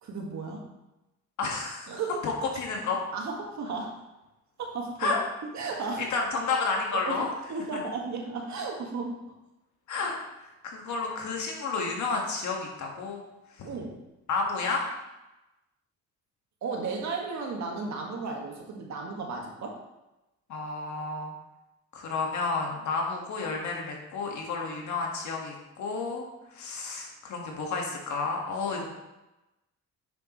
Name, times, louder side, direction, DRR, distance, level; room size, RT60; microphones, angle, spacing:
voice 1, 0.0-0.6 1.9-2.2 3.1-4.0 4.6-5.2 5.4-6.1 7.0-9.2 13.6-14.0 16.6-19.8, right 4 dB, 65° right, 0 dB, 1.7 m, -34 dB
voice 2, 1.4-3.0 5.0-5.2 6.1-7.3 7.7-7.8 9.9-13.2 14.3-14.8 20.5-21.3 21.9-26.2 26.5-28.8, left 4 dB, 70° left, 0 dB, 1.8 m, -31 dB
8.0 x 6.6 x 3.1 m, 0.99 s
cardioid pair, 90°, 30 cm